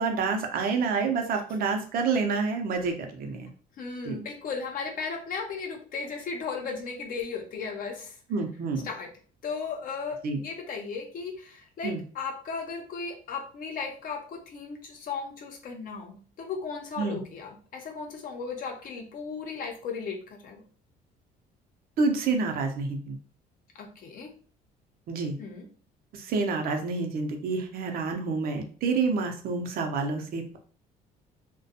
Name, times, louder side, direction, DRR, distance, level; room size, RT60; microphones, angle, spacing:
voice 1, 0.0-3.5 4.0-4.2 8.3-8.9 10.2-10.4 11.8-12.0 17.0-17.2 22.0-23.2 25.1-25.3 26.1-30.6, right 4 dB, 60° right, 4 dB, 0.6 m, -28 dB
voice 2, 3.8-8.2 8.8-9.1 9.4-20.6 23.7-24.3 25.4-25.7, left 5 dB, 55° left, 2 dB, 0.6 m, -36 dB
2.4 x 2.2 x 2.7 m, 0.41 s
cardioid pair, 110°, 17 cm